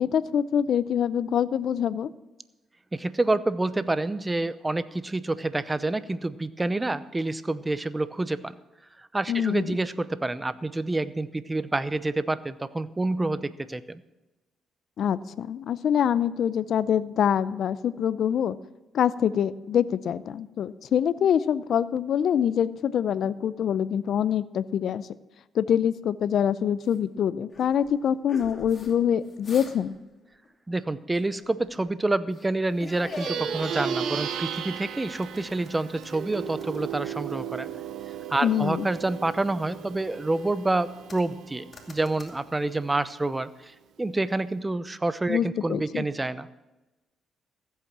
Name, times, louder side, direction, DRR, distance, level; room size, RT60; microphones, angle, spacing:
voice 1, 0.0-2.1 9.3-9.8 15.0-18.5 18.9-25.1 25.5-29.9 38.4-38.9 45.3-46.0, left 9 dB, 65° left, 17 dB, 0.5 m, -25 dB
voice 2, 2.9-8.5 9.1-14.0 30.7-37.7 38.3-43.7 44.0-46.5, right 2 dB, 15° right, 15 dB, 0.7 m, -28 dB
sound 1, 26.9-27.0 27.5-29.0 29.3-30.0 30.2-30.5 31.1-31.9 32.3-32.5 32.8-34.7 35.2-36.2 36.6-37.8 38.2-39.0 39.5-40.6 41.1-41.4 41.7-42.3, left 3 dB, 30° left, 2.6 m, -43 dB
Plucked string instrument, 33.0-42.7, right 8 dB, 70° right, 0.8 m, -35 dB
14.5 x 8.2 x 6.1 m, 1.1 s
cardioid pair, 90°, 0 cm